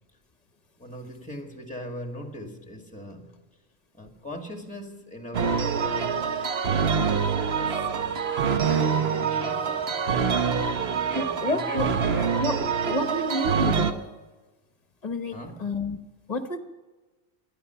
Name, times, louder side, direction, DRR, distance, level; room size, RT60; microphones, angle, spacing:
voice 1, 0.8-3.3 3.9-6.3 7.4-8.2 8.8-10.1 10.7-12.4 15.3-15.8, equal, 5° left, 1.9 m, -40 dB
sound 1, 5.3-13.9, right 6 dB, 60° right, 1.2 m, -25 dB
voice 2, 11.1-11.9 12.4-12.6 12.8-14.0 15.0-16.0 16.3-16.6, left 1 dB, 35° left, 1.2 m, -29 dB
25.0 x 10.0 x 5.7 m
omnidirectional pair, 1.3 m